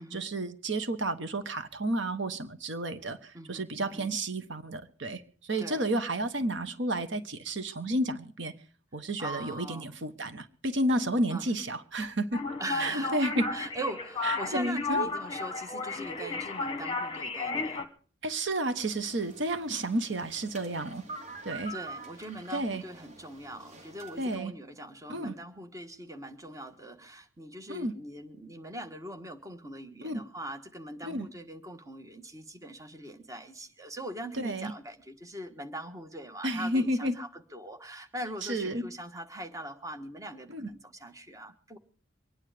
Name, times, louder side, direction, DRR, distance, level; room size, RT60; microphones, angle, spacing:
voice 1, 0.0-8.5 8.9-12.4 12.8-13.5 14.2-15.1 16.2-16.3 18.2-21.0 21.4-21.7 22.5-22.8 24.2-24.5 25.1-25.3 27.7-27.9 30.0-30.2 31.0-31.3 34.4-34.7 36.4-37.1 38.5-38.8 40.5-40.7, right 1 dB, 60° right, 10 dB, 1.2 m, -31 dB
voice 2, 3.3-4.1 5.6-5.9 9.2-9.9 11.3-11.4 12.6-17.9 21.7-41.8, right 1 dB, 15° right, 5 dB, 1.4 m, -41 dB
sound 1, 12.3-17.8, left 4 dB, 25° left, 1.4 m, -33 dB
sound 2, 18.8-24.3, right 3 dB, 35° right, 2.3 m, -46 dB
24.5 x 9.9 x 5.0 m, 0.43 s
head